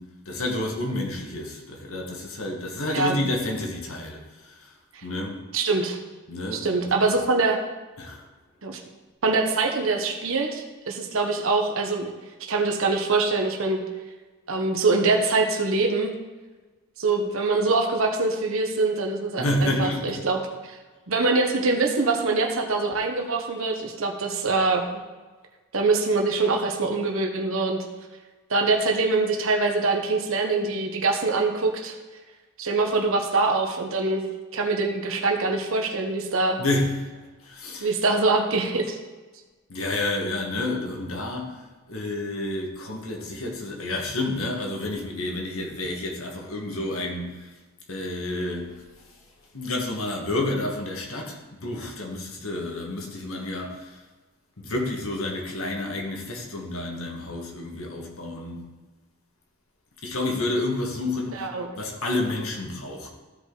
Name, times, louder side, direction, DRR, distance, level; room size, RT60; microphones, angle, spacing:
voice 1, 0.0-5.4 6.3-6.9 8.0-8.3 19.4-20.2 36.6-37.9 39.7-47.5 47.9-49.2 49.5-54.0 54.6-58.7 60.0-61.5 61.7-63.1, left 2 dB, 75° left, 1 dB, 1.8 m, -30 dB
voice 2, 5.5-6.0 6.5-7.6 8.6-8.8 9.2-12.1 12.5-13.8 14.5-16.1 17.0-20.4 20.7-20.8 21.1-25.0 25.7-27.8 28.5-31.9 32.6-34.2 34.5-36.6 37.8-39.0 61.4-61.7, right 3 dB, 70° right, 2 dB, 1.1 m, -24 dB
14.5 x 5.2 x 4.0 m, 1.3 s
head